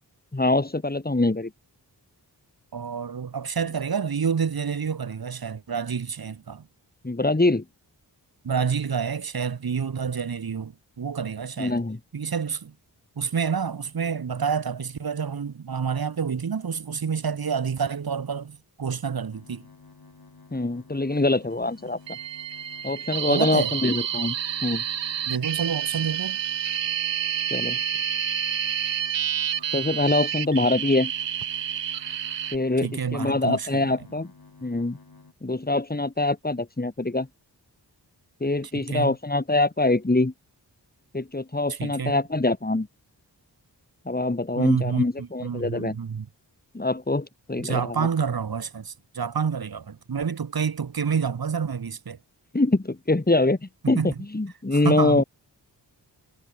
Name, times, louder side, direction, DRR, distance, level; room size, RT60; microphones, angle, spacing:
voice 1, 0.3-1.5 7.0-7.6 11.6-12.0 20.5-22.2 22.8-24.4 24.6-24.8 27.5-27.8 29.7-31.1 32.5-34.3 34.6-35.0 35.4-37.3 38.4-40.3 41.1-42.9 44.1-46.0 46.7-48.1 52.5-55.2, left 2 dB, 20° left, 2.5 m, -24 dB
voice 2, 2.7-6.7 8.4-11.8 12.1-12.7 13.2-19.7 23.3-23.7 25.3-26.4 32.8-34.0 38.7-39.1 41.7-42.2 44.6-46.3 47.6-52.2 53.8-54.1 54.8-55.2, right 6 dB, 55° right, 1.1 m, -28 dB
sound 1, 19.3-35.3, left 4 dB, 60° left, 6.7 m, -51 dB
sound 2, 22.1-32.6, right 9 dB, 90° right, 0.8 m, -29 dB
wide cardioid pair, 85°, 42 cm